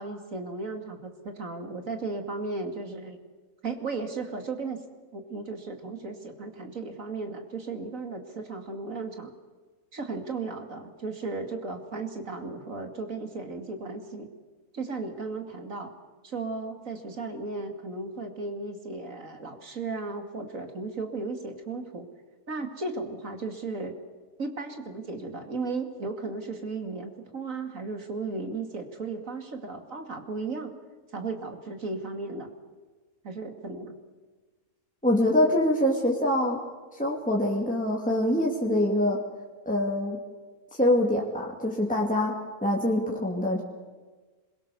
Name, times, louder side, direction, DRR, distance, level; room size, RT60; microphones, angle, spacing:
voice 1, 0.0-3.2 3.6-4.8 5.1-9.3 9.9-14.3 14.7-15.9 16.2-22.1 22.5-23.9 24.4-30.7 31.1-32.5 33.2-34.0, right 3 dB, 60° right, 5 dB, 2.8 m, -35 dB
voice 2, 35.0-36.6 36.9-39.2 39.7-40.2 40.7-42.3 42.6-43.6, left 1 dB, 5° left, -2 dB, 2.7 m, -24 dB
26.5 x 22.5 x 7.0 m, 1.3 s
omnidirectional pair, 1.6 m